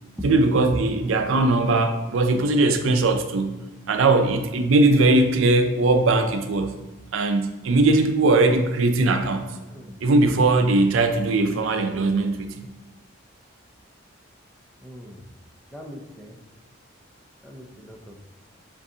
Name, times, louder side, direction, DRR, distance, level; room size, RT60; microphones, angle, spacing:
voice 1, 0.2-3.6 3.9-6.7 7.1-9.5 10.0-12.5, right 2 dB, 80° right, 7 dB, 0.5 m, -20 dB
voice 2, 14.8-15.2 15.7-16.4 17.4-18.3, equal, 5° left, 0 dB, 0.5 m, -42 dB
7.3 x 2.6 x 2.7 m, 1.1 s
head